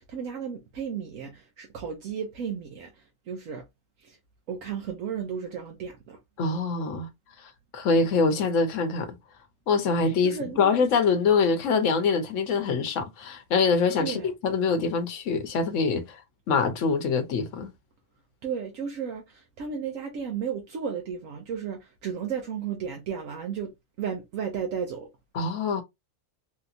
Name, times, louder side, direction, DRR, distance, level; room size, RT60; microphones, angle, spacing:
voice 1, 0.0-2.9 3.3-3.6 4.0-4.2 4.5-6.2 10.2-10.7 14.0-14.3 18.4-23.7 24.0-25.1, right 7 dB, 75° right, 1.1 m, -34 dB
voice 2, 6.4-7.1 7.4-9.2 9.7-16.2 16.5-17.7 25.3-25.8, left 4 dB, 70° left, 1.1 m, -24 dB
3.4 x 2.8 x 2.4 m
omnidirectional pair, 1.4 m